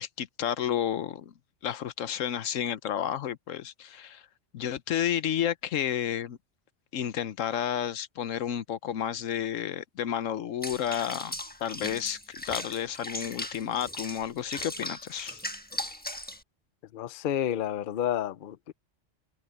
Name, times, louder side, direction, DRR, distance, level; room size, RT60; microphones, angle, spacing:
voice 1, 0.0-1.3 1.6-4.2 4.5-6.4 6.9-11.3 11.6-15.4, left 9 dB, 85° left, 1.2 m, -31 dB
Water / Bathtub (filling or washing), 10.6-16.4, left 1 dB, 10° left, 1.1 m, -38 dB
voice 2, 16.9-18.7, left 10 dB, 55° left, 0.7 m, -30 dB
omnidirectional pair, 1.3 m